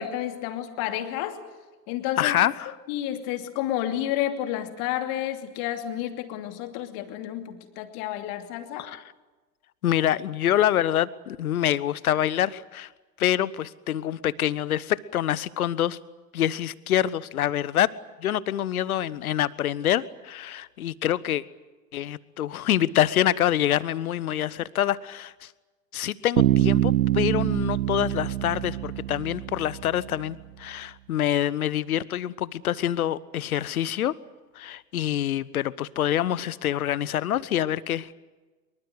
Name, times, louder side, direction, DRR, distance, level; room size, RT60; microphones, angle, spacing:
voice 1, 0.0-1.4 1.9-2.3 2.9-8.9, left 12 dB, 40° left, 7 dB, 2.8 m, -30 dB
voice 2, 2.2-2.8 8.8-9.0 9.8-12.9 13.2-16.0 16.3-17.9 18.2-21.4 21.9-25.5 25.9-34.1 34.5-38.1, left 11 dB, 60° left, 21 dB, 1.1 m, -26 dB
Bass guitar, 26.4-30.1, right 12 dB, 60° right, 0.8 m, -24 dB
24.5 x 23.5 x 8.0 m, 1.2 s
figure-of-eight pair, 90°, 49 cm